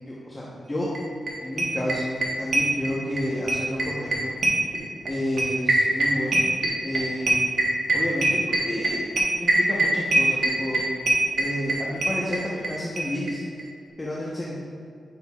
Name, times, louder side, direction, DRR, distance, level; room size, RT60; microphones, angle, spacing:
voice 1, 0.1-0.9 1.4-4.3 5.1-6.4 6.8-7.4 7.9-9.1 9.4-10.8 11.4-13.4 14.0-14.5, left 1 dB, 20° left, -6 dB, 1.0 m, -30 dB
sound 1, 0.9-1.0 1.3-1.4 1.6-3.2 3.5-12.7 13.0-13.1 13.3-13.4 13.6-13.7, right 2 dB, 60° right, 1.3 m, -22 dB
10.0 x 6.2 x 2.4 m, 2.2 s
wide cardioid pair, 130°, 0 cm